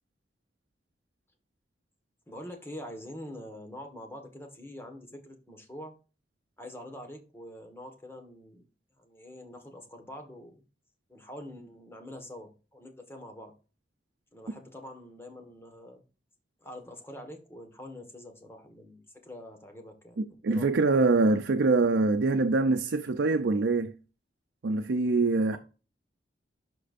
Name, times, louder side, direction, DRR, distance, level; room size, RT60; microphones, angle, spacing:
voice 1, 2.3-6.0 6.6-8.6 8.9-10.6 11.1-13.5 14.3-16.0 16.6-20.7 25.5-25.6, left 1 dB, 15° left, 1.5 m, -45 dB
voice 2, 20.2-23.9 24.6-25.6, right 3 dB, 85° right, 0.5 m, -24 dB
11.5 x 4.4 x 2.5 m
head